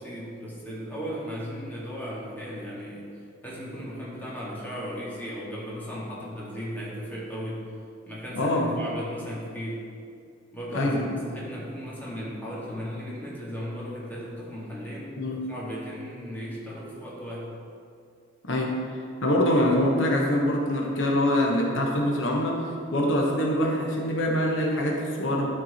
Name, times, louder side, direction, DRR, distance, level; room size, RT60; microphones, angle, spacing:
voice 1, 0.0-3.0 3.4-7.7 8.1-9.8 10.5-17.5, equal, 10° left, -7 dB, 2.2 m, -36 dB
voice 2, 8.3-8.7 10.7-11.2 15.2-15.4 18.4-25.5, left 1 dB, 85° left, -1 dB, 1.2 m, -24 dB
12.0 x 4.6 x 4.3 m, 2.4 s
head